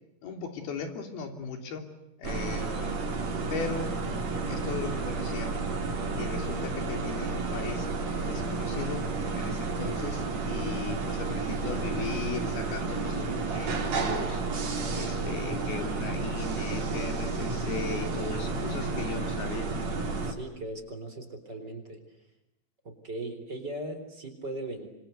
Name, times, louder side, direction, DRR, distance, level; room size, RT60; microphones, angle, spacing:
voice 1, 0.2-1.9 2.2-3.0 3.5-3.9 4.5-5.5 6.1-7.9 8.2-14.6 14.9-19.7, left 5 dB, 90° left, 6 dB, 5.1 m, -37 dB
sound 1, 2.2-20.3, right 3 dB, 50° right, 4.4 m, -31 dB
voice 2, 20.2-22.0 22.8-24.9, right 1 dB, 30° right, 7 dB, 4.1 m, -38 dB
27.0 x 25.5 x 8.1 m, 0.90 s
omnidirectional pair, 4.3 m